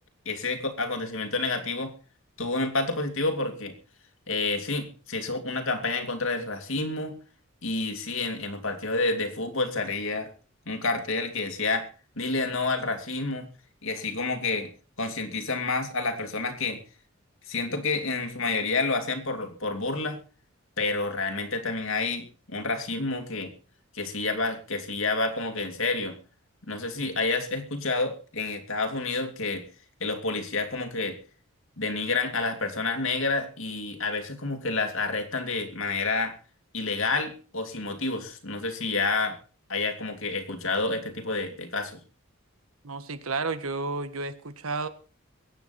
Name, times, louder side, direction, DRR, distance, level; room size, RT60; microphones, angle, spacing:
voice 1, 0.2-1.9 2.4-3.7 4.3-7.2 7.6-10.3 10.7-11.9 12.2-13.5 13.8-14.7 15.0-16.8 17.5-20.2 20.8-23.5 23.9-26.2 26.7-29.6 30.0-31.2 31.8-36.3 36.7-39.4 39.7-42.0, left 3 dB, 65° left, 5 dB, 2.7 m, -29 dB
voice 2, 42.8-44.9, right 3 dB, 80° right, 11 dB, 1.5 m, -31 dB
23.0 x 9.1 x 4.2 m, 0.36 s
head